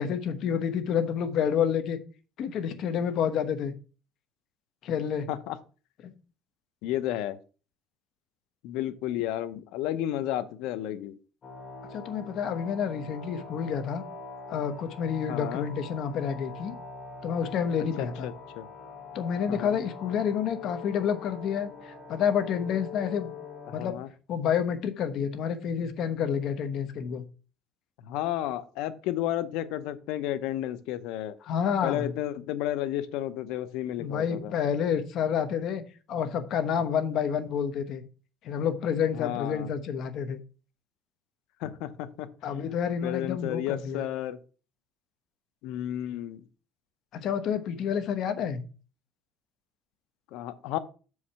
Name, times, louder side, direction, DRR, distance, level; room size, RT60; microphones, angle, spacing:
voice 1, 0.0-2.0 2.4-3.7 4.8-5.3 6.0-6.1 11.9-14.0 14.5-16.7 17.2-18.3 19.1-23.3 23.7-24.0 24.3-27.3 31.4-32.1 34.0-35.8 36.1-38.0 38.4-40.4 42.4-44.1 47.1-48.6, left 7 dB, 55° left, 10 dB, 1.1 m, -29 dB
voice 2, 6.8-7.4 8.6-11.1 15.3-15.7 18.0-18.6 19.5-19.8 23.7-24.1 28.1-31.4 31.8-34.5 39.1-39.7 41.6-42.3 43.0-44.4 45.6-46.4 50.3-50.8, left 12 dB, 80° left, 13 dB, 0.8 m, -32 dB
sound 1, 11.4-23.9, left 4 dB, 30° left, 1.8 m, -43 dB
7.1 x 4.9 x 5.6 m, 0.36 s
cardioid pair, 135°, 0 cm